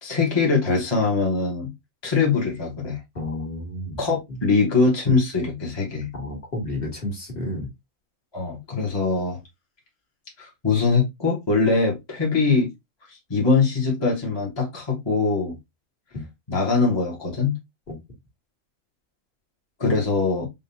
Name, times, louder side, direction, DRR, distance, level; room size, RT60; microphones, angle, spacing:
voice 1, 0.0-1.7 2.0-3.0 4.0-6.1 8.3-9.4 10.4-12.7 13.1-15.6 16.5-17.6 19.8-20.5, left 4 dB, 20° left, 1.2 m, -22 dB
voice 2, 3.2-4.0 6.1-7.7 16.1-16.2 17.9-18.0, left 1 dB, 45° left, 1.9 m, -31 dB
5.3 x 2.6 x 2.7 m
omnidirectional pair, 1.4 m